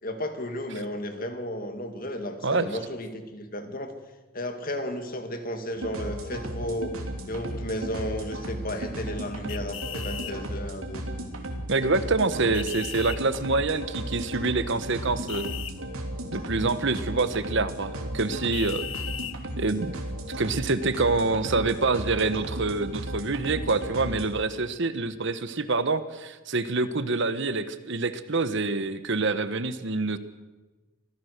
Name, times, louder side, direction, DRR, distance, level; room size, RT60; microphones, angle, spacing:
voice 1, 0.0-3.9 4.3-6.9 7.3-11.0, left 1 dB, 40° left, 7 dB, 2.3 m, -33 dB
sound 1, 5.8-24.3, right 1 dB, 80° right, 3.2 m, -35 dB
sound 2, 9.5-10.3 12.5-13.2 15.3-15.7 18.5-19.4, left 11 dB, 65° left, 1.1 m, -36 dB
voice 2, 11.7-15.5 16.3-18.8 19.6-20.0 20.4-30.2, right 3 dB, 60° right, 12 dB, 1.1 m, -26 dB
25.5 x 16.5 x 6.7 m, 1.2 s
head